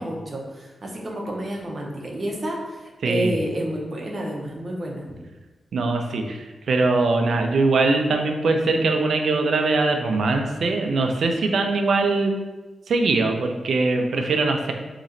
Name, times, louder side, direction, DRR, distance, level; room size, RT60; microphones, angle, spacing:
voice 1, 0.0-5.0, right 1 dB, 40° right, -1 dB, 0.8 m, -29 dB
voice 2, 3.0-3.4 5.7-12.3 12.9-14.7, right 3 dB, 75° right, 4 dB, 0.5 m, -22 dB
4.1 x 3.0 x 3.8 m, 1.2 s
wide cardioid pair, 130°, 0 cm